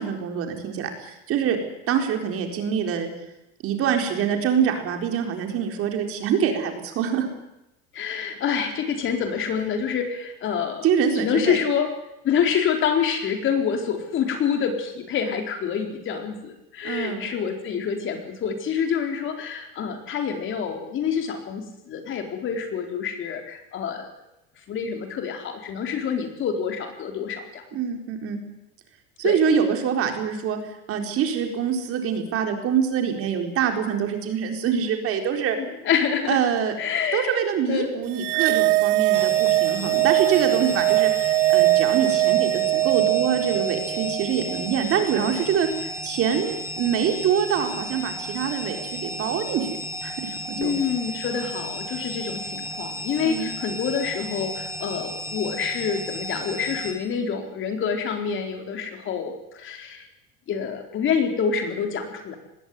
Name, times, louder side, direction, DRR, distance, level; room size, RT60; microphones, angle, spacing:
voice 1, 0.0-1.6 1.9-3.1 3.6-7.3 10.8-11.6 16.8-17.3 27.7-28.4 29.2-35.6 36.3-36.7 37.1-49.7 50.0-50.7 53.2-53.5, right 7 dB, 50° right, 4 dB, 4.3 m, -25 dB
voice 2, 7.9-10.9 11.2-11.9 12.2-24.1 24.7-27.6 29.2-29.4 35.6-36.4 36.8-37.4 37.7-37.9 50.6-60.1 60.5-62.4, left 7 dB, 40° left, 5 dB, 4.2 m, -27 dB
sound 1, 38.2-44.7, right 18 dB, 65° right, 0.7 m, -21 dB
sound 2, 39.1-56.9, left 1 dB, 10° right, 5.5 m, -34 dB
20.0 x 17.0 x 9.6 m, 0.89 s
supercardioid pair, 120°, 30 cm